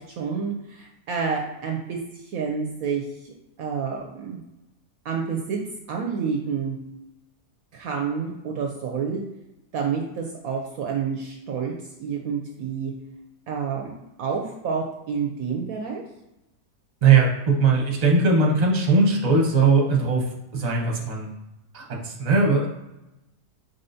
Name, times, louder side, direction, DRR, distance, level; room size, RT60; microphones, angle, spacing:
voice 1, 0.0-3.3 3.6-4.4 5.0-5.6 5.9-6.8 7.7-9.2 9.7-11.7 12.0-12.9 13.5-13.9 14.2-16.0, right 6 dB, 70° right, 1 dB, 0.9 m, -29 dB
voice 2, 17.0-20.2 20.5-21.3 21.7-22.7, right 4 dB, 30° right, -1 dB, 0.8 m, -19 dB
5.5 x 3.4 x 2.7 m, 0.93 s
omnidirectional pair, 1.8 m